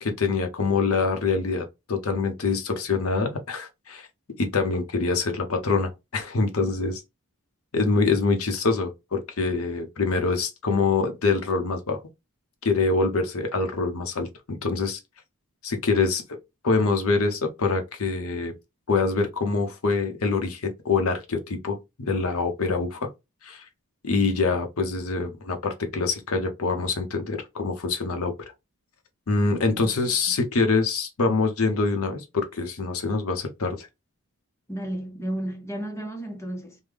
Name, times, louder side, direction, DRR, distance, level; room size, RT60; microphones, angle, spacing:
voice 1, 0.0-4.1 4.4-7.0 7.7-12.0 12.6-15.0 15.6-16.2 16.6-18.5 18.9-23.1 23.4-23.6 24.0-28.3 29.3-33.9, left 4 dB, 75° left, 0.8 m, -25 dB
voice 2, 29.8-30.4 34.7-36.8, right 1 dB, 10° left, 0.7 m, -33 dB
3.6 x 2.1 x 3.3 m
head